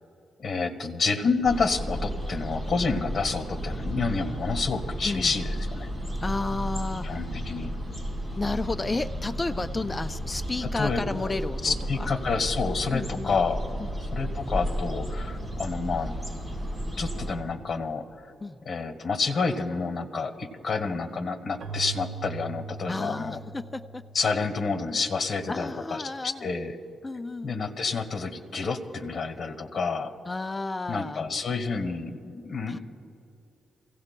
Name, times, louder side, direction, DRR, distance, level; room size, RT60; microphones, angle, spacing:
voice 1, 0.4-5.9 7.0-7.8 10.7-11.0 11.6-13.6 14.1-16.1 17.0-18.3 18.6-23.4 24.1-26.0 26.4-26.7 27.4-30.1 30.9-32.8, left 4 dB, 50° left, 5 dB, 1.7 m, -29 dB
sound 1, 1.4-17.4, equal, 5° right, 4.1 m, -33 dB
voice 2, 6.2-7.3 8.4-12.1 12.9-13.3 13.8-13.9 18.4-18.6 22.9-24.0 25.5-26.5 27.0-27.8 30.3-31.3 32.7-32.8, left 3 dB, 20° left, 11 dB, 0.4 m, -32 dB
Keyboard (musical), 21.6-25.1, right 5 dB, 75° right, 0.8 m, -40 dB
28.5 x 17.0 x 2.2 m, 2.6 s
cardioid pair, 115°, 0 cm